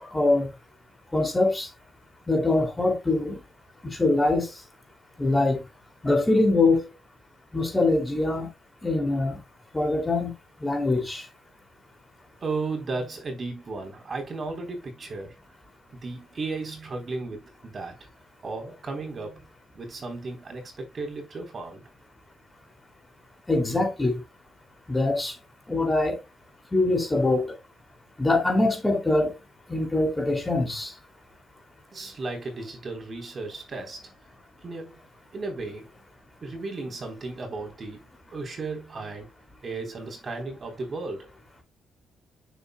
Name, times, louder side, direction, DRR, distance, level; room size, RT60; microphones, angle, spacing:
voice 1, 0.1-0.5 1.1-1.7 2.3-3.4 4.0-4.5 5.2-5.6 6.0-6.8 7.5-8.5 8.8-9.4 9.7-10.3 10.6-11.2 23.5-24.2 24.9-25.3 25.7-26.2 26.7-27.5 28.2-29.3 29.7-30.9, left 2 dB, 15° left, 2.6 m, -23 dB
voice 2, 12.4-15.4 15.9-18.0 18.4-19.5 19.7-21.8 31.9-34.1 34.6-35.0 35.3-35.9 36.4-39.3 39.6-41.3, right 3 dB, 40° right, 3.6 m, -35 dB
9.5 x 7.2 x 2.2 m
cardioid pair, 90°, 0 cm